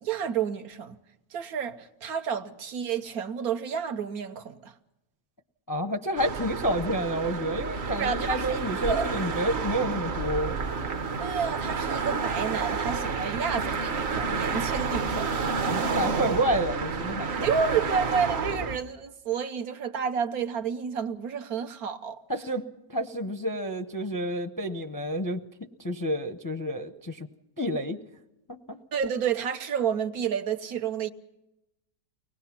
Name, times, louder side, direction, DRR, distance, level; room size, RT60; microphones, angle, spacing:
voice 1, 0.0-1.0 1.3-4.7 8.0-9.2 11.2-15.4 17.4-22.2 28.9-31.1, right 7 dB, 80° right, 1.4 m, -30 dB
voice 2, 5.7-10.6 15.7-17.5 22.3-25.4 25.8-27.3 27.6-28.0 28.5-28.8, equal, 20° left, 0.5 m, -29 dB
sound 1, 6.2-18.8, right 4 dB, 50° right, 1.1 m, -30 dB
24.0 x 19.0 x 5.9 m
omnidirectional pair, 1.6 m